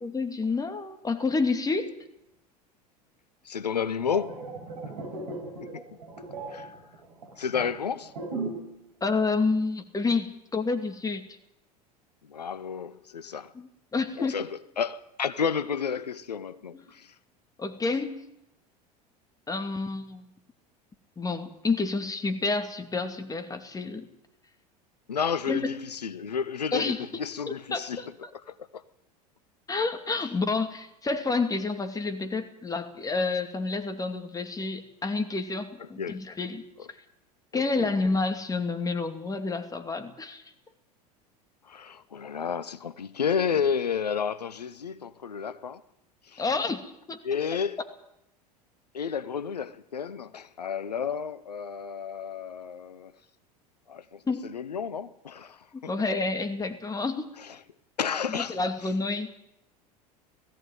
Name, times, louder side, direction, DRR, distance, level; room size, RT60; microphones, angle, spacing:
voice 1, 0.0-1.9 9.0-11.2 13.5-14.4 17.6-18.3 19.5-20.2 21.2-24.1 25.5-25.8 26.7-27.0 27.5-28.1 29.7-36.6 37.5-40.4 46.4-47.2 54.3-54.5 55.7-57.3 58.3-59.3, left 3 dB, 15° left, 2.6 m, -29 dB
voice 2, 3.4-4.4 5.6-5.8 6.5-6.7 7.4-8.1 12.3-13.5 14.2-17.1 25.1-28.0 28.3-28.4 28.7-28.8 36.0-36.2 36.8-36.9 37.5-37.9 41.6-45.8 46.2-46.4 47.2-47.8 48.9-53.1 53.9-55.9 57.4-57.6 58.0-58.9, left 7 dB, 85° left, 0.8 m, -31 dB
sound 1, 4.0-8.8 9.0-9.3, right 3 dB, 80° right, 4.9 m, -38 dB
18.0 x 16.0 x 9.2 m
figure-of-eight pair, 80°, 20 cm